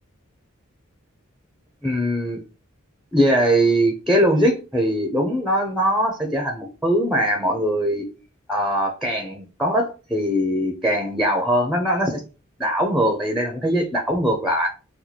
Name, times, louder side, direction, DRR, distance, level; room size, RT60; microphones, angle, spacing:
voice 1, 1.8-2.4 3.1-8.0 8.5-12.2 12.6-14.7, equal, ahead, 0.5 m, -21 dB
2.9 x 2.3 x 4.0 m
head